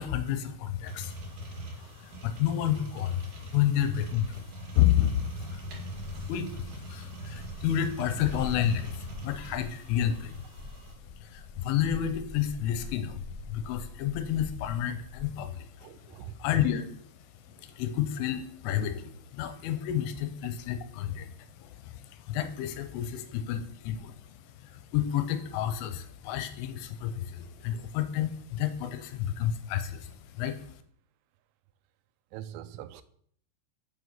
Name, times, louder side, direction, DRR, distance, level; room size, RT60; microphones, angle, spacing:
voice 1, 0.0-10.5 10.8-10.9 11.1-30.8, left 10 dB, 85° left, 3.2 m, -31 dB
sound 1, 0.8-10.9, right 1 dB, 55° right, 2.7 m, -42 dB
voice 2, 1.6-2.0 15.8-16.4 17.6-17.7 32.3-33.0, right 11 dB, 85° right, 3.3 m, -44 dB
sound 2, 2.9-3.0 3.4-15.2, left 3 dB, 45° left, 1.5 m, -45 dB
7.1 x 6.4 x 6.8 m
omnidirectional pair, 5.9 m